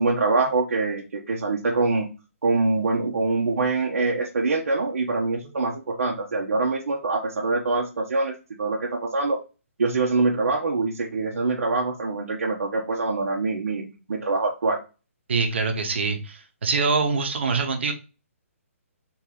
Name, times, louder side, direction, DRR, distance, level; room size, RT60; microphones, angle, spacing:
voice 1, 0.0-2.1 2.4-9.4 9.8-14.8, right 3 dB, 85° right, -2 dB, 1.0 m, -24 dB
voice 2, 15.3-17.9, right 4 dB, 50° right, 6 dB, 1.0 m, -24 dB
3.9 x 2.9 x 3.9 m, 0.31 s
hypercardioid pair, 175°, 8 cm